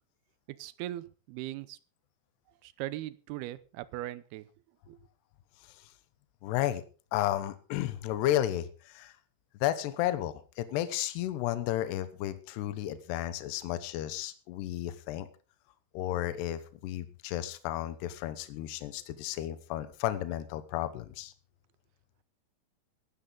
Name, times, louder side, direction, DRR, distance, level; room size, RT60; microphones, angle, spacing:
voice 1, 0.6-1.8 2.6-4.5 4.9-5.0, right 15 dB, 75° right, 16 dB, 2.6 m, -39 dB
voice 2, 6.4-6.8 7.1-9.1 9.6-15.3 15.9-21.3, left 13 dB, 80° left, 12 dB, 3.0 m, -33 dB
17.5 x 12.0 x 3.9 m, 0.36 s
omnidirectional pair, 4.8 m